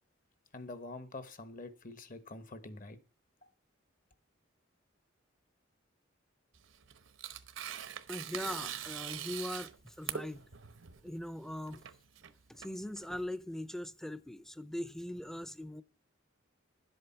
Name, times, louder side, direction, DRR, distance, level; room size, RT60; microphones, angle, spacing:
voice 1, 0.5-3.0, left 2 dB, 45° left, 1.2 m, -46 dB
Tearing, 6.5-13.3, right 9 dB, 80° right, 0.9 m, -43 dB
voice 2, 8.1-10.4 11.0-11.8 12.5-15.8, left 1 dB, ahead, 0.6 m, -41 dB
11.5 x 7.9 x 5.8 m
head